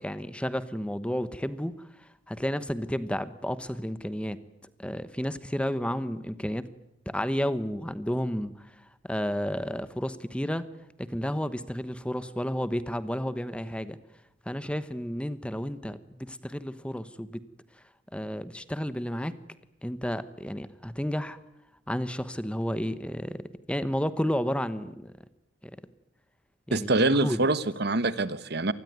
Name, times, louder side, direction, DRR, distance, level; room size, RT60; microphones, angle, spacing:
voice 1, 0.0-4.4 4.8-6.7 7.1-10.6 11.0-14.0 14.5-17.4 18.1-19.3 19.8-21.4 21.9-23.4 23.7-25.1 25.6-25.7 26.7-27.4, equal, 5° left, 13 dB, 1.1 m, -32 dB
voice 2, 26.7-28.7, right 2 dB, 55° right, 15 dB, 1.3 m, -25 dB
26.5 x 20.5 x 9.5 m, 0.81 s
head